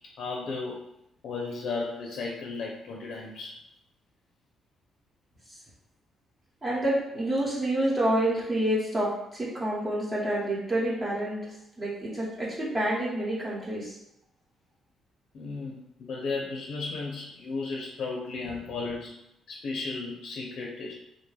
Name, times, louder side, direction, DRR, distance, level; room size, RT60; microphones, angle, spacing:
voice 1, 0.2-0.8 1.2-3.6 15.3-19.2 19.5-20.9, left 3 dB, 70° left, -1 dB, 0.5 m, -34 dB
voice 2, 6.6-11.4 11.8-13.9, right 1 dB, 35° right, -7 dB, 1.0 m, -28 dB
2.5 x 2.2 x 3.2 m, 0.80 s
cardioid pair, 90°, 0 cm